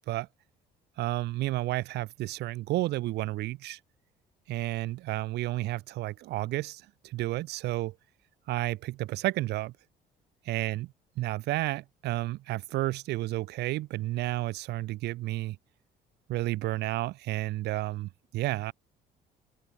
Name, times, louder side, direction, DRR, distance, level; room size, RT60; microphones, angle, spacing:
voice 1, 1.0-3.8 4.5-7.9 8.5-9.7 10.5-10.9 11.2-15.6 16.3-18.7, right 17 dB, 80° right, 3.0 m, -31 dB
cardioid pair, 110°, 17 cm